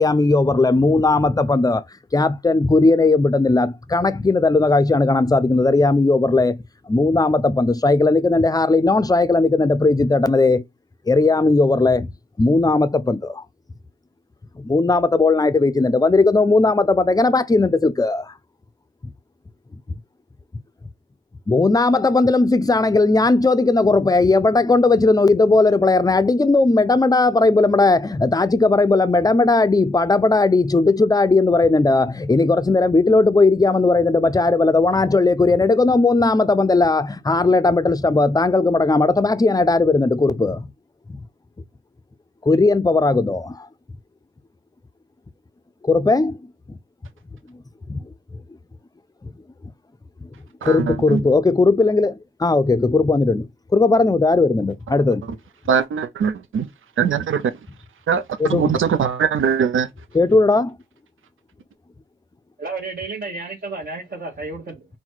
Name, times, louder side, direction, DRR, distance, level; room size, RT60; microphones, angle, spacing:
voice 1, 0.0-1.8 2.1-6.6 6.9-10.6 11.1-12.1 12.4-13.4 14.6-18.2 21.5-40.7 42.5-43.6 45.8-46.4 47.9-48.0 50.6-53.5 53.7-55.3 58.4-58.7 60.1-60.8, left 3 dB, 20° left, 0.5 m, -17 dB
voice 2, 50.6-51.2 55.7-56.7 57.0-57.6 58.1-58.2 58.5-59.9, right 7 dB, 80° right, 0.6 m, -21 dB
voice 3, 62.6-64.9, right 3 dB, 50° right, 1.1 m, -31 dB
3.9 x 2.2 x 4.5 m
cardioid pair, 70°, 20 cm